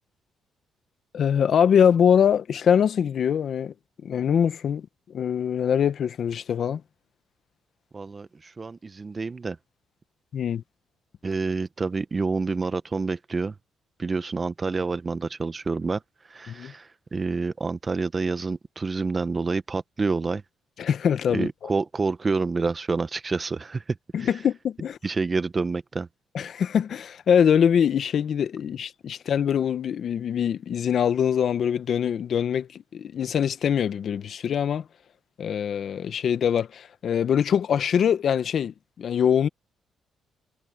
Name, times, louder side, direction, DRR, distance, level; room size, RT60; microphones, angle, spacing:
voice 1, 1.1-3.7 4.0-6.8 10.3-10.6 16.5-16.7 20.8-21.5 24.1-25.0 26.3-34.9 35.4-39.5, left 8 dB, 60° left, 1.2 m, -23 dB
voice 2, 7.9-9.6 11.2-13.5 14.0-16.0 16.3-20.4 21.3-23.8 24.2-24.3 25.0-26.1, right 4 dB, 30° right, 1.0 m, -28 dB
cardioid pair, 90°, 0 cm